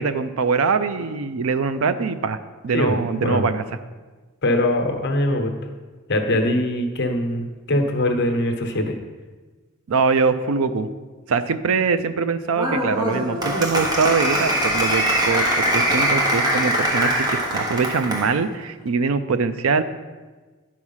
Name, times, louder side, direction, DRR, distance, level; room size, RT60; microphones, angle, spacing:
voice 1, 0.0-2.4 2.6-3.6 9.9-10.9 11.3-19.8, right 5 dB, 70° right, 12 dB, 0.5 m, -22 dB
voice 2, 2.7-3.5 4.4-5.5 6.1-9.0, left 1 dB, 50° left, 4 dB, 1.0 m, -22 dB
Applause, 12.5-18.3, right 1 dB, 20° right, 1.1 m, -22 dB
9.8 x 4.7 x 5.6 m, 1.3 s
head